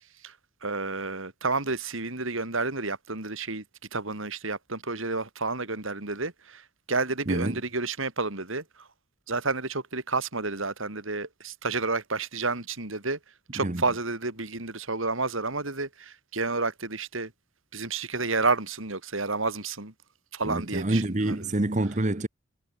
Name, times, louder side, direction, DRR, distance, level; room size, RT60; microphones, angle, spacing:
voice 1, 0.6-3.6 3.9-6.6 6.9-8.6 9.3-13.2 13.5-17.3 17.7-19.9 20.3-21.4, right 3 dB, 70° right, 3.6 m, -30 dB
voice 2, 7.3-7.6 13.6-13.8 20.4-22.3, right 1 dB, 35° right, 1.1 m, -27 dB
head